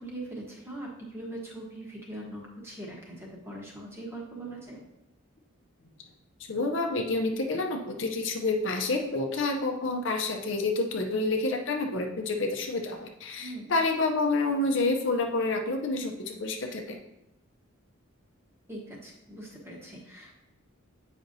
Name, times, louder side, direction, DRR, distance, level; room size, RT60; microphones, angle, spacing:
voice 1, 0.0-4.8 13.4-13.8 18.7-20.4, right 1 dB, 10° right, -2 dB, 1.1 m, -41 dB
voice 2, 6.5-17.0, left 3 dB, 60° left, 3 dB, 0.6 m, -28 dB
8.1 x 5.0 x 2.7 m, 0.87 s
head